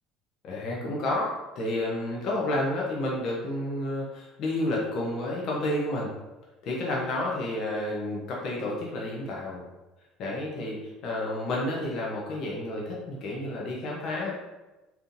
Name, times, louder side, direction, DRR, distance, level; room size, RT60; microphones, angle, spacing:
voice 1, 0.4-6.1 6.6-9.6 10.2-14.3, left 1 dB, 55° left, -3 dB, 0.7 m, -30 dB
3.5 x 2.8 x 2.6 m, 1.1 s
hypercardioid pair, 65°, 0 cm